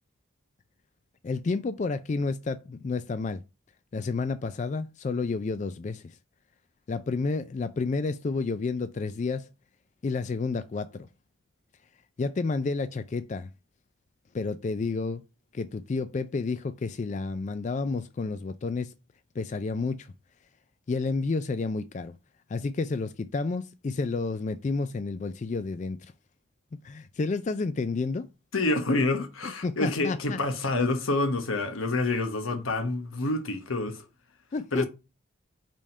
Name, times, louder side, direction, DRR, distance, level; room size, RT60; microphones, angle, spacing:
voice 1, 1.2-3.4 3.9-6.2 6.9-9.5 10.0-11.1 12.2-13.5 14.3-15.2 15.5-18.9 19.3-20.1 20.9-22.2 22.5-26.1 26.7-28.3 29.6-30.4 34.5-34.8, left 4 dB, 35° left, 0.3 m, -30 dB
voice 2, 28.5-34.0 34.7-34.9, left 2 dB, 85° left, 1.1 m, -27 dB
5.2 x 3.6 x 5.4 m
head